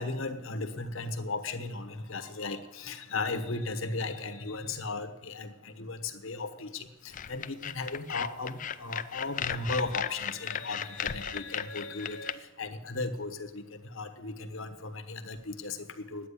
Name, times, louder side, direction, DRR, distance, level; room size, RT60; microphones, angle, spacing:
voice 1, 0.0-13.6 13.9-16.3, left 3 dB, 65° left, 9 dB, 1.1 m, -36 dB
sound 1, 7.1-12.3, left 8 dB, 40° left, 0.4 m, -36 dB
9.9 x 9.0 x 9.7 m, 1.1 s
head